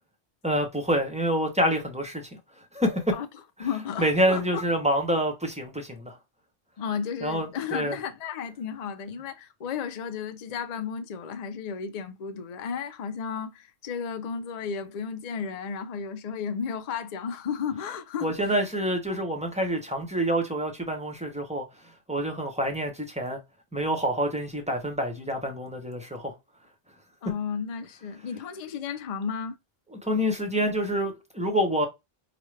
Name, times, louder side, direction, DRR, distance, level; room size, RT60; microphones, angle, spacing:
voice 1, 0.4-2.4 2.7-3.1 3.6-3.7 4.0-6.2 7.2-8.0 18.2-21.7 22.1-23.4 23.7-26.3 29.9-31.9, equal, 5° right, 0.7 m, -27 dB
voice 2, 3.6-4.6 6.8-18.5 27.2-29.6, left 6 dB, 50° left, 0.5 m, -33 dB
4.9 x 2.2 x 3.2 m
omnidirectional pair, 1.1 m